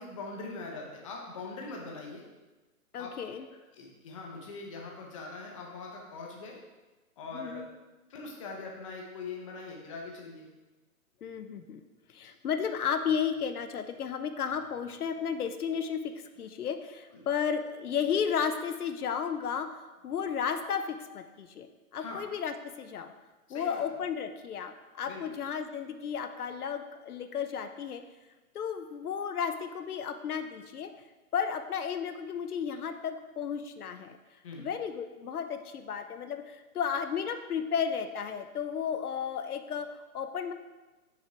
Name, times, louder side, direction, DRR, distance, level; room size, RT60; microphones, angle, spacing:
voice 1, 0.0-2.2 3.0-3.1 3.7-6.6 7.2-7.6 8.1-10.5 17.1-17.3 22.0-22.2 23.5-23.8 25.1-25.2 34.4-34.7, left 3 dB, 20° left, -1 dB, 1.0 m, -42 dB
voice 2, 2.9-3.4 7.3-7.7 11.2-11.8 12.1-21.7 21.9-23.1 23.5-28.0 28.5-30.9 31.3-40.5, left 7 dB, 80° left, 8 dB, 0.8 m, -33 dB
6.4 x 6.2 x 4.6 m, 1.2 s
hypercardioid pair, 165°, 44 cm